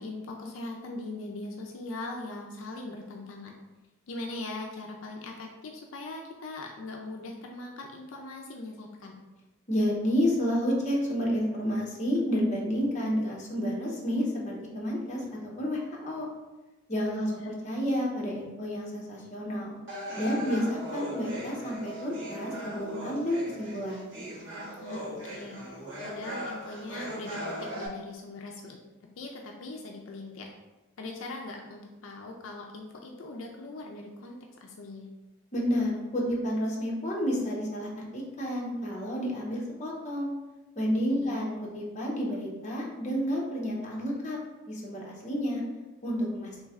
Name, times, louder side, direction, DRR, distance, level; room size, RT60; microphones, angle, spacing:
voice 1, 0.0-3.5 4.1-9.2 17.2-17.5 24.8-25.6 26.0-28.8 29.2-30.5 31.0-35.1 41.1-41.4, left 2 dB, 75° left, 1 dB, 0.4 m, -40 dB
voice 2, 9.7-16.3 16.9-19.7 20.2-24.1 35.5-40.3 40.8-44.4 44.7-45.6 46.0-46.5, equal, 35° left, -3 dB, 0.7 m, -30 dB
sound 1, 19.9-27.9, equal, 60° right, 1.4 m, -38 dB
3.2 x 3.1 x 3.5 m, 1.1 s
head